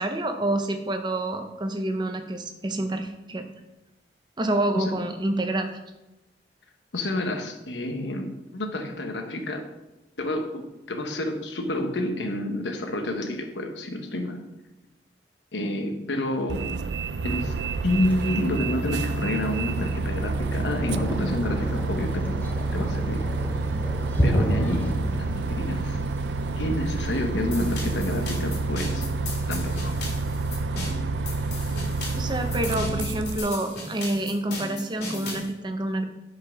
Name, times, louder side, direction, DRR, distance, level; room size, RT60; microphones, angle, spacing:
voice 1, 0.0-3.5 4.4-5.7 32.2-36.1, right 1 dB, 25° right, 6 dB, 0.6 m, -28 dB
voice 2, 6.9-9.6 10.2-14.4 15.5-16.6 17.2-17.5 17.8-22.4 22.7-23.2 24.2-26.0 26.6-29.1 29.5-29.9, left 1 dB, 90° left, 5 dB, 1.0 m, -29 dB
Bus, 16.5-33.4, right 3 dB, 75° right, 0.4 m, -28 dB
Thunder, 17.9-29.8, equal, 10° left, 0.8 m, -32 dB
sound 1, 27.5-35.5, left 2 dB, 70° left, 2.2 m, -37 dB
6.0 x 5.4 x 5.2 m, 0.98 s
head